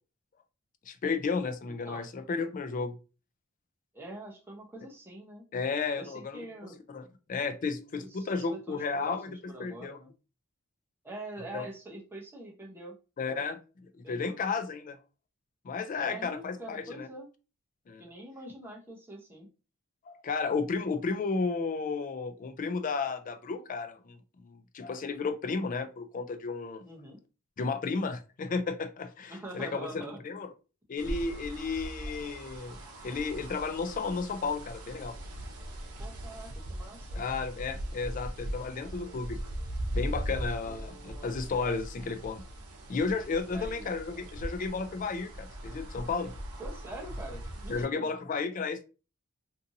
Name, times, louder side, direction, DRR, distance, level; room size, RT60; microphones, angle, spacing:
voice 1, 0.9-3.0 5.5-6.4 6.9-9.3 9.6-10.0 11.5-11.6 13.2-13.6 14.0-15.0 15.6-17.1 17.9-18.0 20.1-24.2 24.4-26.8 27.6-30.5 30.9-32.8 33.0-35.2 37.2-39.4 39.9-42.4 42.9-46.3 47.7-48.9, left 4 dB, 40° left, 9 dB, 0.3 m, -33 dB
voice 2, 1.7-2.1 3.9-5.4 5.9-6.8 8.0-10.1 11.0-13.0 13.2-13.4 14.0-14.4 16.0-17.3 18.0-19.5 26.8-27.2 29.3-30.3 36.0-37.2 40.7-41.4 43.5-44.0 46.6-48.1, right 1 dB, 10° right, -1 dB, 0.7 m, -44 dB
sound 1, 31.0-47.8, right 1 dB, 90° right, 0.7 m, -40 dB
2.6 x 2.5 x 2.6 m, 0.33 s
head